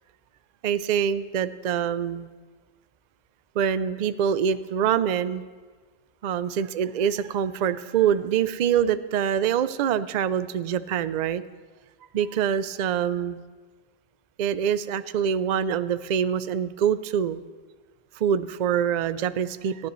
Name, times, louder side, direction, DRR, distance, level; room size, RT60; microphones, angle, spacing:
voice 1, 0.6-2.3 3.6-5.4 6.2-11.4 12.1-13.4 14.4-17.4 18.2-19.9, right 8 dB, 55° right, 14 dB, 0.5 m, -25 dB
19.0 x 14.0 x 3.1 m, 1.4 s
omnidirectional pair, 1.1 m